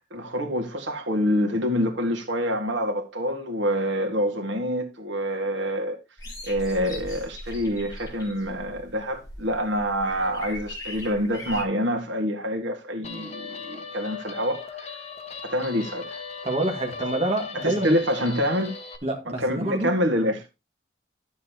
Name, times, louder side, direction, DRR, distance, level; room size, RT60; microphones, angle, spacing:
voice 1, 0.1-6.0 6.4-14.9 15.4-16.2 17.5-18.7 19.3-20.5, equal, 85° right, 1.9 m, -26 dB
sound 1, 6.2-11.6, left 1 dB, 20° left, 4.0 m, -40 dB
Guitar, 13.0-19.0, left 5 dB, 35° left, 1.4 m, -38 dB
voice 2, 16.4-18.0 19.0-19.9, right 1 dB, 35° right, 2.1 m, -27 dB
12.0 x 7.4 x 2.9 m
head